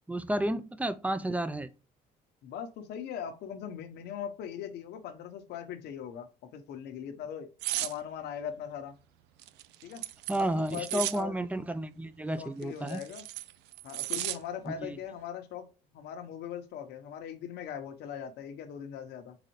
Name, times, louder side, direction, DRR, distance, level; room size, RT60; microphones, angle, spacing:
voice 1, 0.1-1.7 10.3-13.0 14.7-15.0, right 1 dB, 10° right, 0.5 m, -32 dB
voice 2, 2.4-7.5 7.8-8.9 9.8-11.4 12.4-13.2 13.8-19.4, left 8 dB, 80° left, 1.0 m, -40 dB
sound 1, 7.6-7.9 9.4-11.2 12.6-14.4 14.8-15.0, right 15 dB, 85° right, 0.4 m, -35 dB
4.1 x 4.0 x 3.0 m
cardioid pair, 110°, 17 cm